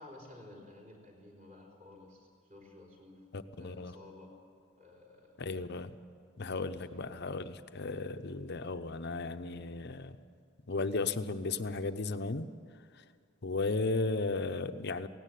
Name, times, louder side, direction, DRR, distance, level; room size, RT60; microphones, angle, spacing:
voice 1, 0.0-3.2 3.6-4.4 4.8-5.4 6.5-7.2, left 2 dB, 35° right, 0 dB, 4.2 m, -54 dB
voice 2, 3.3-3.9 5.4-5.9 6.4-10.2 10.7-12.5 13.4-15.1, left 3 dB, 55° left, 10 dB, 0.8 m, -35 dB
17.5 x 16.5 x 9.4 m, 2.2 s
head